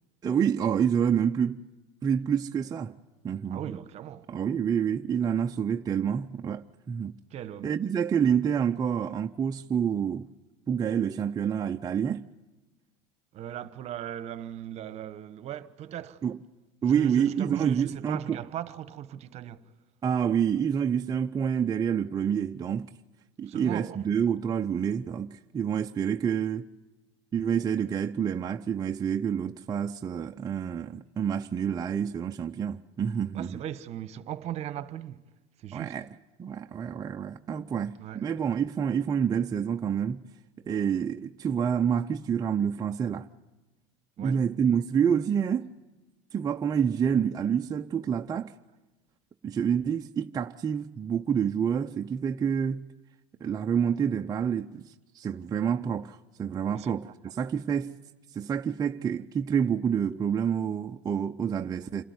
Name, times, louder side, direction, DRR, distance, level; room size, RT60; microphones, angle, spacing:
voice 1, 0.2-1.6 2.0-2.9 3.2-3.6 4.3-7.1 7.6-10.3 10.7-12.2 16.2-16.4 16.8-18.4 20.0-22.9 23.4-26.7 27.3-33.6 35.7-36.0 36.4-40.2 40.7-43.3 44.2-45.7 46.3-48.5 49.4-52.8 53.4-54.8 55.1-57.0 57.4-57.9 58.3-62.0, right 8 dB, 25° right, 0.6 m, -28 dB
voice 2, 3.5-4.3 7.3-7.7 13.3-16.2 16.8-19.7 23.5-24.1 33.3-35.2 35.6-36.0 38.0-38.2 44.2-44.4 56.7-57.1, right 11 dB, 45° right, 1.1 m, -38 dB
27.5 x 13.0 x 9.5 m
supercardioid pair, 105°, 15 cm